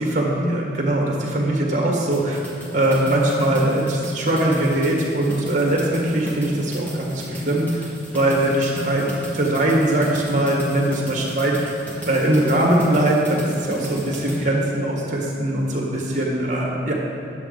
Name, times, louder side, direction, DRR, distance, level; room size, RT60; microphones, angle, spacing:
voice 1, 0.0-2.4 2.7-7.9 8.1-9.1 9.3-11.7 12.1-16.9, right 1 dB, 40° right, -1 dB, 1.5 m, -21 dB
sound 1, 2.1-14.4, equal, 10° left, 1.5 m, -33 dB
9.3 x 7.2 x 3.9 m, 2.8 s
head